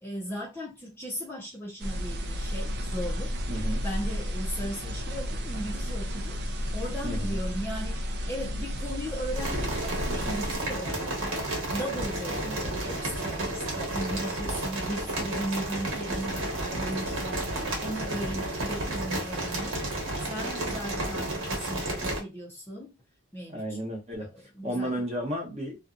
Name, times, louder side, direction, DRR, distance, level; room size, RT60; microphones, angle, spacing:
voice 1, 0.0-3.4 3.8-6.4 6.7-17.5 17.8-23.0 23.3-23.8 24.2-24.9, equal, 10° left, 0.6 m, -37 dB
sound 1, 1.8-10.6, equal, 50° right, 0.5 m, -32 dB
voice 2, 3.5-3.8 7.0-7.4 12.4-12.5 23.5-24.3 24.6-25.8, right 1 dB, 30° right, 1.0 m, -33 dB
sound 2, 6.4-6.6 6.9-7.0 7.4-7.5 8.0-8.2 8.7-8.9 9.6-10.1 10.5-10.6 11.5-11.6 12.0-12.1 12.6-12.8 13.1-13.3 13.6-13.8 14.1-14.3 14.7-14.8 15.2-15.3 15.6-15.8 16.2-16.3 16.6-16.8 17.2-17.4 17.8-17.9 18.2-18.3 18.6-18.7 19.0-19.5 19.8-19.9 20.3-20.8 21.4-21.6 21.9-22.0, left 1 dB, 70° left, 1.0 m, -50 dB
sound 3, 9.3-22.2, right 1 dB, 70° right, 1.1 m, -32 dB
2.7 x 2.3 x 2.5 m
head